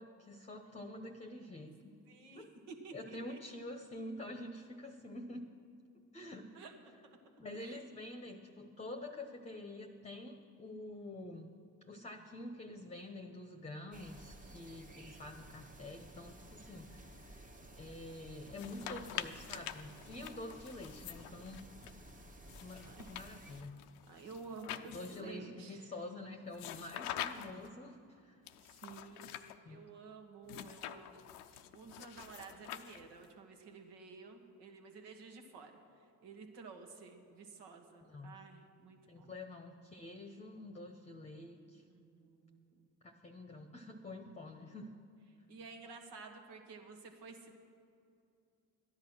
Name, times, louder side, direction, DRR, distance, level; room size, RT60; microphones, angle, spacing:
voice 1, 0.0-1.9 2.3-2.5 2.9-5.5 6.1-6.5 7.4-11.5 11.8-17.5 17.8-21.7 22.6-23.8 24.9-28.4 29.6-29.8 38.0-38.4 39.1-41.8 43.0-44.9, left 1 dB, 15° left, 4 dB, 1.0 m, -47 dB
voice 2, 2.1-3.4 6.5-6.8 7.1-7.2 7.5-7.8 22.1-22.2 22.8-23.1 24.1-25.9 28.6-35.8 36.2-39.3 41.8-42.9 45.5-47.6, right 4 dB, 65° right, 5 dB, 1.6 m, -52 dB
sound 1, 13.9-23.6, right 1 dB, 20° right, 1.4 m, -55 dB
sound 2, 18.5-21.9 22.5-25.4 26.5-27.7 28.5-29.5 30.5-33.3, left 11 dB, 90° left, 0.6 m, -46 dB
13.5 x 10.5 x 6.3 m, 2.5 s
hypercardioid pair, 55°, 43 cm